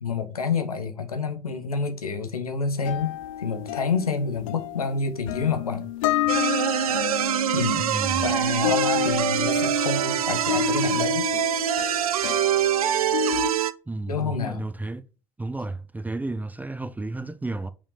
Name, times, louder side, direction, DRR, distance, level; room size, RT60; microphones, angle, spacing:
voice 1, 0.0-5.8 7.5-7.9 8.2-11.3 14.1-14.6, left 5 dB, 80° left, 1.0 m, -28 dB
sound 1, 2.8-13.5, left 11 dB, 65° left, 0.6 m, -30 dB
sound 2, 6.3-13.7, right 10 dB, 75° right, 0.4 m, -24 dB
voice 2, 7.8-8.3 13.9-15.0 15.4-17.7, right 2 dB, 10° right, 0.5 m, -32 dB
5.3 x 5.2 x 4.9 m
figure-of-eight pair, 60°, 19 cm